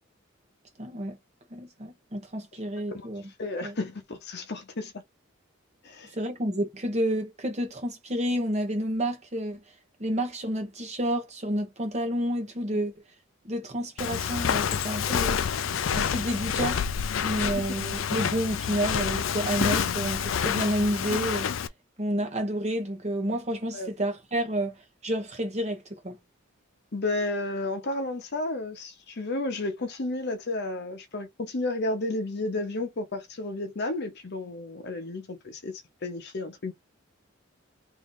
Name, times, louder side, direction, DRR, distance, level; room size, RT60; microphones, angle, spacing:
voice 1, 0.8-1.2 1.5-3.2 3.6-3.7 6.1-9.6 10.0-12.9 13.4-15.4 15.9-16.8 17.2-21.5 22.0-24.8 25.0-26.2, right 1 dB, 35° right, 1.1 m, -30 dB
voice 2, 3.4-5.0 5.8-6.1 12.7-12.8 23.7-23.9 26.9-36.7, left 2 dB, 55° left, 0.8 m, -32 dB
Walk footsteps, 14.0-21.7, left 7 dB, 70° left, 0.4 m, -28 dB
3.1 x 2.7 x 3.9 m
head